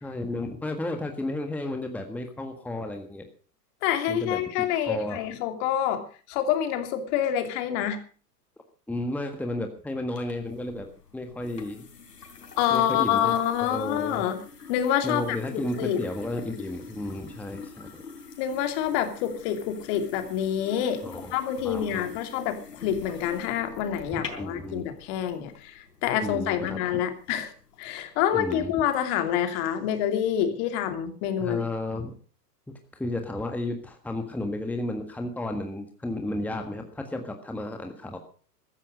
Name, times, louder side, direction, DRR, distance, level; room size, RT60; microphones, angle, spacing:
voice 1, 0.0-3.3 4.1-4.4 4.7-5.2 8.9-10.9 11.1-11.9 12.7-13.3 13.6-14.2 15.0-18.0 21.0-21.4 21.6-22.0 24.1-24.9 26.2-26.8 28.3-28.7 31.4-32.1 32.9-38.2, left 1 dB, 5° left, 5 dB, 1.6 m, -33 dB
voice 2, 3.8-6.0 6.3-8.0 12.6-14.4 14.7-16.0 18.4-21.0 21.3-27.5 27.8-31.6, left 10 dB, 45° left, 7 dB, 2.8 m, -27 dB
sound 1, 10.1-28.6, left 5 dB, 80° left, 4.0 m, -45 dB
15.0 x 13.5 x 5.2 m, 0.40 s
figure-of-eight pair, 105°, 48 cm